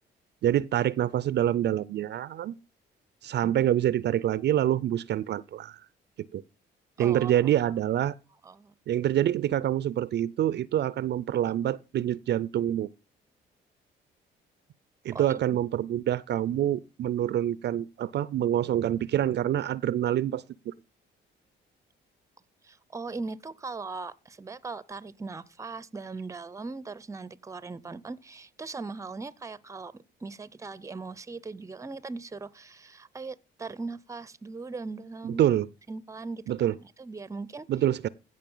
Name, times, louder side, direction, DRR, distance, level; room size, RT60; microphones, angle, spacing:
voice 1, 0.4-2.5 3.2-5.8 6.3-6.4 7.0-8.1 8.9-12.9 15.0-20.7 35.2-35.7 36.5-36.7 37.7-38.1, right 11 dB, 60° right, 0.5 m, -26 dB
voice 2, 7.0-7.7 8.4-8.7 15.1-15.2 22.6-35.4 35.9-36.5 36.8-37.7, right 3 dB, 15° right, 0.6 m, -39 dB
16.0 x 5.3 x 5.4 m
cardioid pair, 90°, 20 cm